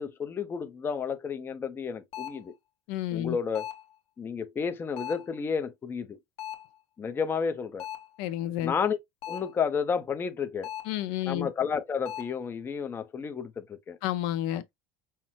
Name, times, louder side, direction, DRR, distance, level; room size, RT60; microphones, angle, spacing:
voice 1, 0.0-2.5 3.1-3.7 4.2-6.2 7.0-7.9 8.6-9.0 9.3-10.7 11.3-14.0, left 6 dB, 15° left, 0.5 m, -31 dB
sound 1, 2.1-2.5 3.5-3.9 5.0-5.4 6.4-6.7 7.8-8.2 9.2-9.6 10.6-11.0 12.0-12.4, left 11 dB, 50° left, 1.1 m, -39 dB
voice 2, 2.9-3.4 8.2-8.7 10.8-11.5 14.0-14.6, left 13 dB, 65° left, 0.6 m, -30 dB
5.7 x 2.0 x 3.0 m
supercardioid pair, 145°, 13 cm